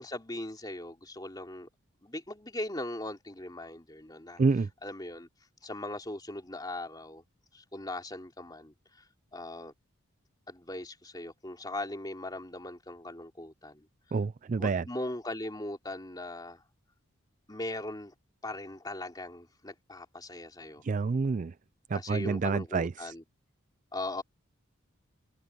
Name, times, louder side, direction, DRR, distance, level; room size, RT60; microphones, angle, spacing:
voice 1, 0.0-1.7 2.0-4.4 4.8-5.3 5.6-7.2 7.5-9.0 9.3-9.7 10.5-13.9 14.6-16.6 17.5-18.1 18.4-20.8 21.9-23.2 23.9-24.2, left 1 dB, 20° left, 3.1 m, -39 dB
voice 2, 4.4-4.7 14.1-14.8 20.8-21.5 21.9-23.1, right 4 dB, 35° right, 0.3 m, -28 dB
head